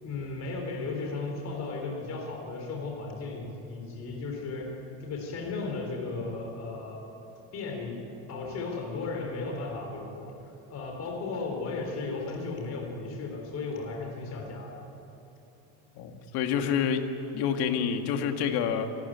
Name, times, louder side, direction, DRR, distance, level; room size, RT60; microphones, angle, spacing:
voice 1, 0.0-4.7 5.0-7.0 7.5-8.0 8.3-10.3 10.7-14.9, left 3 dB, 40° left, 1 dB, 3.9 m, -35 dB
voice 2, 16.0-17.0 17.3-18.9, left 7 dB, 75° left, 6 dB, 2.0 m, -28 dB
27.5 x 13.0 x 9.3 m, 2.9 s
cardioid pair, 155°, 39 cm